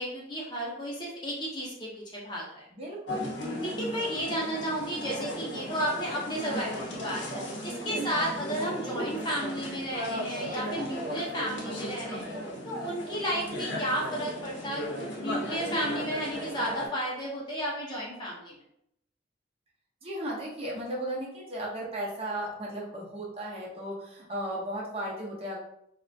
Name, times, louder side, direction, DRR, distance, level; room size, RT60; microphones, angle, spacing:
voice 1, 0.0-2.7 3.6-12.2 12.6-14.8 15.1-18.6, equal, 25° left, -4 dB, 0.6 m, -33 dB
voice 2, 2.7-3.8 7.8-8.1 20.0-25.6, right 1 dB, 30° right, -3 dB, 0.6 m, -36 dB
sound 1, 3.1-16.9, equal, 90° left, 0.7 m, -36 dB
2.3 x 2.1 x 2.5 m, 0.74 s
head